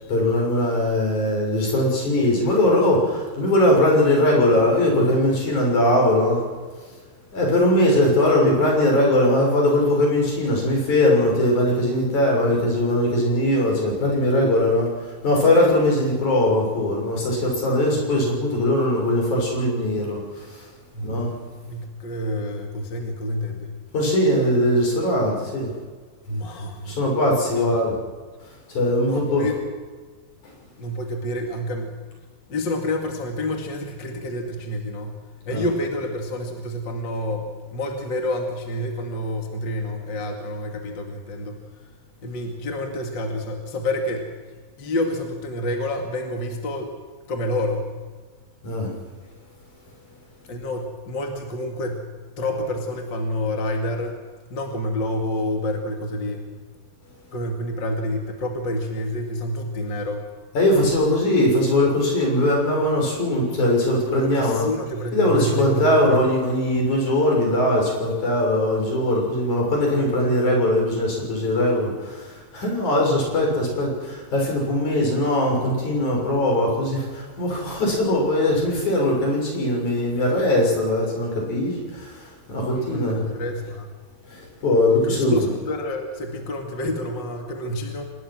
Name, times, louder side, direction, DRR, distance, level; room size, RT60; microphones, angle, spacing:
voice 1, 0.1-6.4 7.3-14.9 15.2-20.2 21.0-21.3 23.9-25.7 26.9-27.9 28.7-29.5 35.5-35.7 48.6-48.9 60.5-64.7 65.1-82.1 82.5-83.2 84.6-85.4, left 1 dB, 55° left, 0 dB, 7.9 m, -20 dB
voice 2, 20.9-21.4 21.7-23.7 26.3-27.0 27.5-27.7 29.0-29.6 30.8-32.0 32.5-41.7 42.2-47.0 47.3-48.0 50.5-52.0 52.4-54.2 54.5-56.5 57.3-60.3 64.2-66.1 82.7-84.0 85.0-88.0, left 1 dB, 35° left, 2 dB, 2.4 m, -28 dB
25.5 x 20.5 x 6.2 m, 1.4 s
omnidirectional pair, 4.1 m